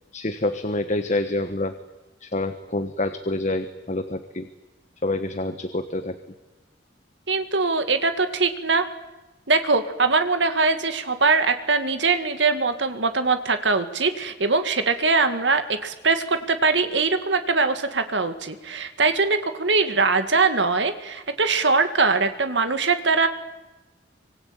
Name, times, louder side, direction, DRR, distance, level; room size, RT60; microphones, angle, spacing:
voice 1, 0.1-1.7 2.2-4.5 5.0-6.2, left 2 dB, 40° left, 9 dB, 1.3 m, -27 dB
voice 2, 7.3-8.9 9.5-23.3, right 4 dB, 75° right, 8 dB, 2.2 m, -22 dB
25.5 x 25.0 x 8.9 m, 1.1 s
head